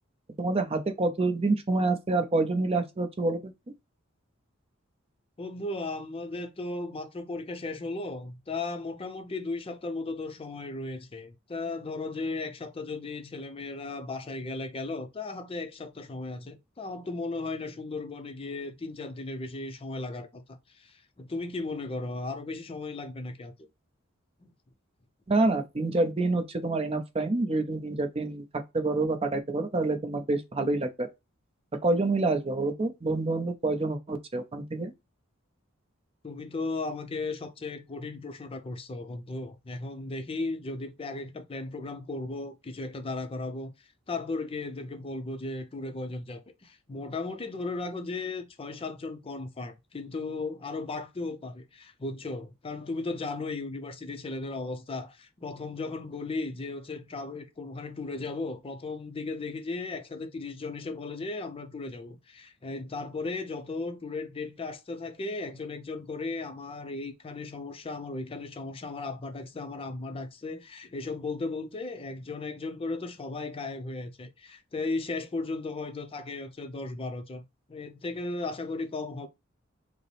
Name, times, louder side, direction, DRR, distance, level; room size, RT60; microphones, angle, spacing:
voice 1, 0.4-3.5 25.3-28.4 28.7-31.1 31.8-34.9, right 2 dB, 30° right, 0.6 m, -27 dB
voice 2, 5.4-23.5 24.4-24.5 36.2-43.7 44.1-77.4 77.7-79.3, left 3 dB, 25° left, 0.5 m, -36 dB
5.1 x 2.0 x 3.1 m
head